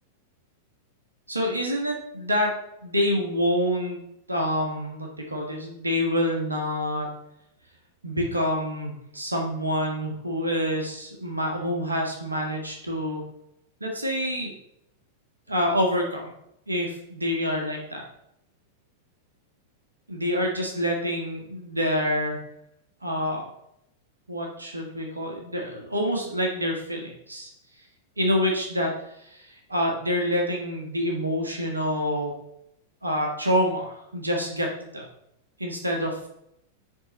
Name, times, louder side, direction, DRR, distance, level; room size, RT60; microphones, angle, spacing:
voice 1, 1.3-2.5 2.8-4.0 4.3-7.2 8.0-13.2 13.8-14.5 15.5-16.3 16.7-18.0 20.1-22.4 23.0-23.4 24.3-27.5 28.2-32.3 33.0-35.1 35.6-36.3, equal, 80° right, 1 dB, 1.4 m, -27 dB
10.5 x 3.8 x 4.1 m, 0.79 s
figure-of-eight pair, 95°, 0 cm